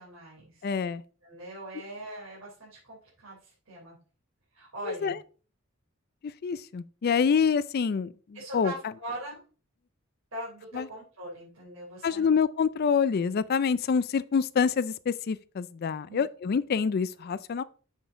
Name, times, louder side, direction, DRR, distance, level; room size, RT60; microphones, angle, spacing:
voice 1, 0.0-0.7 1.2-4.0 4.5-5.2 8.3-9.4 10.3-12.4 16.1-16.2, right 1 dB, 85° right, 3.5 m, -41 dB
voice 2, 0.6-1.0 4.8-5.2 6.2-8.7 10.7-10.9 12.0-17.6, left 6 dB, 50° left, 0.4 m, -26 dB
7.2 x 6.9 x 3.7 m
head